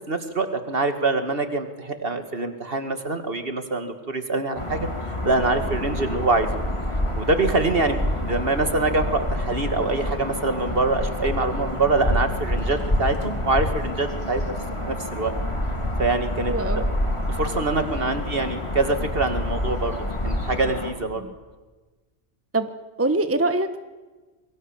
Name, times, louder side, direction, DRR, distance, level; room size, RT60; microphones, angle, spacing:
voice 1, 0.1-4.9 5.2-6.5 7.2-14.4 14.8-15.3 16.0-16.9 17.3-21.3, right 3 dB, 55° right, 8 dB, 2.3 m, -25 dB
sound 1, 4.5-20.9, left 1 dB, 25° left, 3.1 m, -28 dB
voice 2, 16.5-16.8 21.2-21.3 22.5-22.7 23.0-23.8, right 2 dB, 15° right, 9 dB, 1.1 m, -23 dB
27.5 x 23.0 x 7.4 m, 1.3 s
omnidirectional pair, 1.2 m